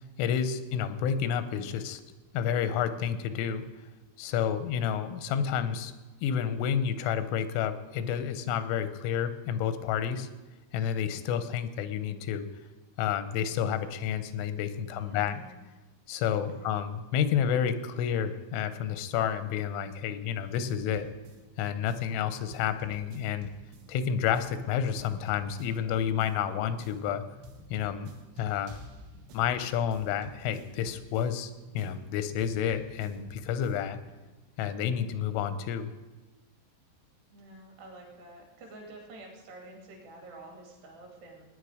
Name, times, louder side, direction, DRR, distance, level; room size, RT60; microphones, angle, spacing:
voice 1, 0.2-2.0 2.3-3.7 4.2-5.9 6.2-10.3 10.7-12.5 13.0-15.4 16.1-21.1 21.6-23.5 23.9-27.2 27.7-28.1 28.4-28.8 29.3-34.0 34.6-35.9, left 8 dB, 90° left, 11 dB, 3.4 m, -30 dB
voice 2, 11.1-11.4 14.9-15.6 16.3-16.7 37.3-41.6, right 2 dB, 65° right, 1 dB, 4.4 m, -50 dB
sound 1, 20.5-34.1, equal, 85° right, 4.1 m, -51 dB
19.0 x 9.6 x 5.0 m, 1.2 s
omnidirectional pair, 5.5 m